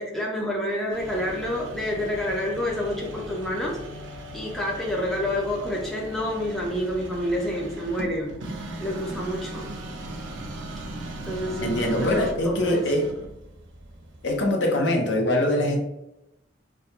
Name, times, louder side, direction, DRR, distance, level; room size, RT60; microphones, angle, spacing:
voice 1, 0.0-3.8 4.3-8.4 8.8-9.8 11.3-12.8, equal, ahead, -3 dB, 0.4 m, -28 dB
sound 1, 0.9-14.5, right 1 dB, 90° right, 0.5 m, -38 dB
voice 2, 11.6-13.1 14.2-15.8, left 1 dB, 75° left, 1 dB, 0.6 m, -23 dB
2.3 x 2.1 x 2.8 m, 0.87 s
head